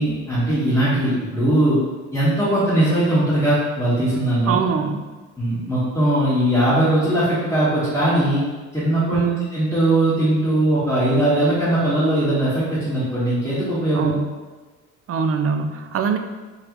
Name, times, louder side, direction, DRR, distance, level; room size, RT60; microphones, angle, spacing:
voice 1, 0.0-1.8 2.1-4.6 5.4-8.4 8.7-9.2 9.5-14.1, right 1 dB, 10° left, -13 dB, 1.5 m, -20 dB
voice 2, 4.5-5.1 9.1-9.5 13.9-14.3 15.1-16.2, right 6 dB, 50° right, 7 dB, 0.4 m, -22 dB
3.7 x 3.3 x 3.0 m, 1.3 s
cardioid pair, 90°, 30 cm